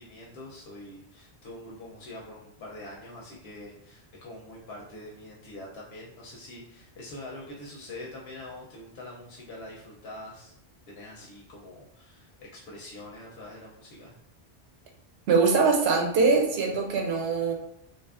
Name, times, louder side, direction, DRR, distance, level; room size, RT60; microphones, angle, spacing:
voice 1, 0.0-10.5 10.9-14.2, left 1 dB, 85° left, -3 dB, 0.8 m, -44 dB
voice 2, 15.3-17.5, right 4 dB, 85° right, 2 dB, 0.8 m, -22 dB
2.6 x 2.4 x 2.3 m, 0.78 s
omnidirectional pair, 1.1 m